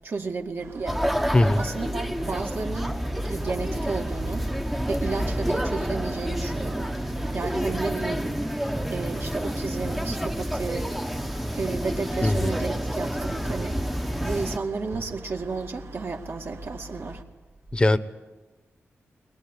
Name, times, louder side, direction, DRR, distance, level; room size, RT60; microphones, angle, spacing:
voice 1, 0.0-1.0 1.6-3.0 3.3-4.5 4.9-7.1 7.3-8.3 8.9-10.9 11.6-13.9 14.2-17.2, right 4 dB, 55° right, 3 dB, 2.2 m, -32 dB
sound 1, 0.6-17.2, right 1 dB, 85° right, 2.0 m, -44 dB
sound 2, 0.9-14.6, equal, 5° right, 0.9 m, -29 dB
voice 2, 1.3-1.6 12.2-12.5 17.7-18.0, left 2 dB, 20° left, 14 dB, 1.0 m, -20 dB
22.0 x 21.0 x 9.9 m, 1.2 s
wide cardioid pair, 100°, 5 cm